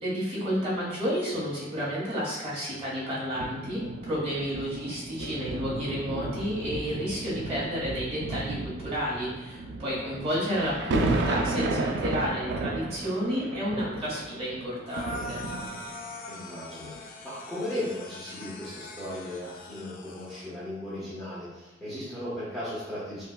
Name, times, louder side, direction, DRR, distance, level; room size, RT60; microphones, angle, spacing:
voice 1, 0.0-15.4, equal, 30° right, -8 dB, 1.4 m, -31 dB
sound 1, 3.3-16.1 16.8-17.0, right 2 dB, 65° right, 0.3 m, -33 dB
sound 2, 14.9-20.5, left 2 dB, 45° left, 0.4 m, -42 dB
voice 2, 16.3-23.2, left 1 dB, ahead, -12 dB, 1.0 m, -36 dB
5.2 x 2.2 x 2.2 m, 1.0 s
head